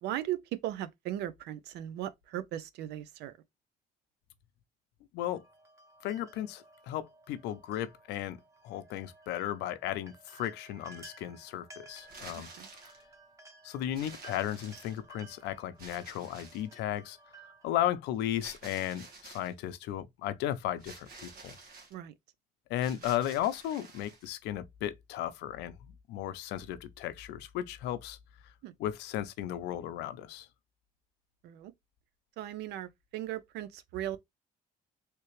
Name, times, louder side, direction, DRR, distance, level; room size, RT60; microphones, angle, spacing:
voice 1, 0.0-3.3 12.6-12.7 21.9-22.1 28.6-28.7 31.4-31.7 32.4-34.2, right 12 dB, 80° right, 0.6 m, -37 dB
sound 1, 5.3-17.7, right 3 dB, 15° right, 1.1 m, -56 dB
voice 2, 6.0-8.4 8.6-12.5 13.6-17.2 17.6-21.5 22.7-28.2 28.8-30.5, left 12 dB, 85° left, 0.6 m, -35 dB
sound 2, 12.0-13.0 13.9-15.2 15.8-16.7 18.4-19.5 20.8-21.9 22.7-24.3, right 3 dB, 60° right, 1.5 m, -50 dB
3.3 x 3.0 x 3.2 m
cardioid pair, 110°, 17 cm